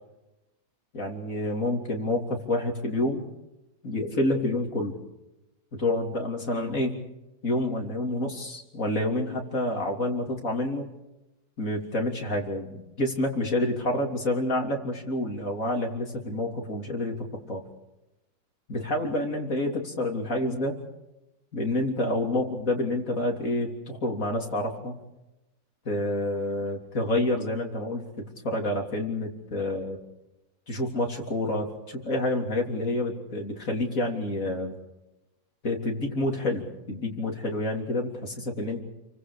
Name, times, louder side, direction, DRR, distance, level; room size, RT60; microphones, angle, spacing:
voice 1, 0.9-3.3 3.8-5.0 5.8-7.0 7.4-10.9 11.6-17.2 17.5-17.6 18.7-20.8 21.5-24.9 25.9-28.0 28.4-30.0 30.7-34.7 35.6-38.8, left 1 dB, 55° left, 1 dB, 3.8 m, -28 dB
29.5 x 24.5 x 5.0 m, 0.97 s
omnidirectional pair, 1.7 m